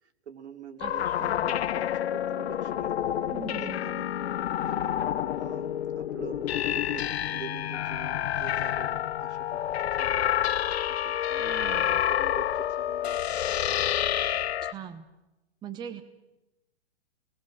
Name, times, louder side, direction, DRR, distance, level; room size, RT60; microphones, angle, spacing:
voice 1, 0.0-3.1 3.6-4.1 4.6-5.0 5.3-10.3 10.9-13.4, right 6 dB, 75° right, 6 dB, 2.8 m, -46 dB
sound 1, 0.8-14.7, left 11 dB, 65° left, 0.9 m, -28 dB
voice 2, 0.8-1.5 3.3-3.9 11.4-12.0 14.6-15.1 15.6-16.0, right 9 dB, 10° right, 9 dB, 0.9 m, -41 dB
29.5 x 20.5 x 6.5 m, 0.99 s
hypercardioid pair, 150°, 34 cm